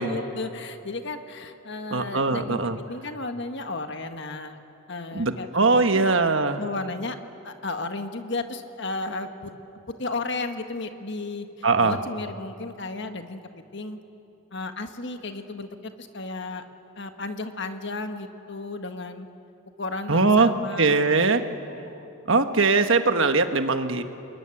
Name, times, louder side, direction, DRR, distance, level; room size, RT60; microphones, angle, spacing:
voice 1, 0.0-4.6 4.9-6.1 6.6-7.2 7.4-9.5 10.0-11.5 11.8-13.4 13.7-14.0 14.5-16.6 17.0-19.3 19.8-22.0, left 3 dB, 55° left, 7 dB, 1.5 m, -34 dB
voice 2, 1.9-2.8 5.1-6.6 11.6-12.0 20.1-20.5 20.8-21.4 22.3-24.0, right 3 dB, 60° right, 7 dB, 1.4 m, -21 dB
26.5 x 21.5 x 10.0 m, 2.9 s
head